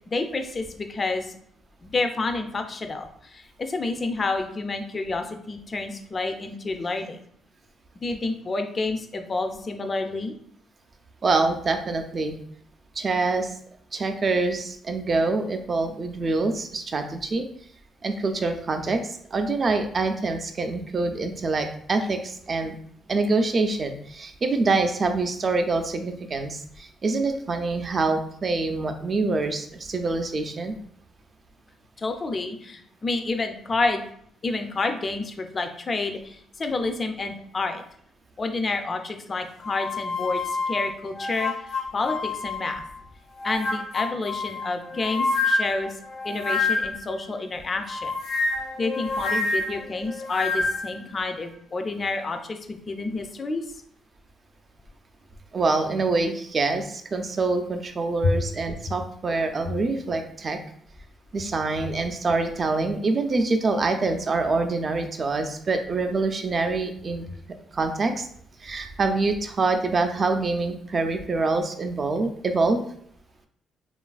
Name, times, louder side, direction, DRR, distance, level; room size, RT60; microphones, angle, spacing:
voice 1, 0.1-1.3 1.8-7.2 8.0-10.4 32.0-34.0 34.4-37.8 38.4-41.5 41.9-42.8 43.4-45.9 46.2-48.1 48.8-53.6 58.2-58.3, left 3 dB, 35° left, 6 dB, 0.4 m, -29 dB
voice 2, 11.2-12.4 13.0-13.5 13.9-17.4 18.0-22.7 23.1-30.7 55.5-60.6 61.3-67.3 67.7-68.3 68.6-72.8, right 3 dB, 40° right, 6 dB, 0.4 m, -25 dB
sound 1, 39.6-42.9 43.3-47.1 47.9-50.9, left 3 dB, 80° left, 0.7 m, -28 dB
3.1 x 2.3 x 2.3 m, 0.66 s
cardioid pair, 90°, 0 cm